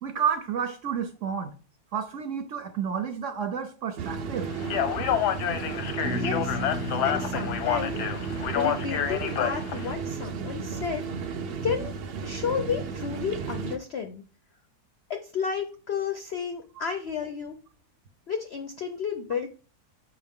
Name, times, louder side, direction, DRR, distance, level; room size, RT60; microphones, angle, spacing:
voice 1, 0.0-1.5 1.9-4.5, right 7 dB, 60° right, 0.9 m, -30 dB
sound 1, 4.0-13.8, right 5 dB, 80° right, 0.5 m, -34 dB
Speech, 4.6-9.9, left 9 dB, 85° left, 1.3 m, -29 dB
voice 2, 6.0-8.0 8.5-11.9 12.2-14.2 15.1-17.6 18.3-19.5, left 6 dB, 65° left, 0.6 m, -32 dB
Bass guitar, 6.0-9.7, equal, 40° right, 1.0 m, -36 dB
6.8 x 4.6 x 3.6 m
omnidirectional pair, 1.7 m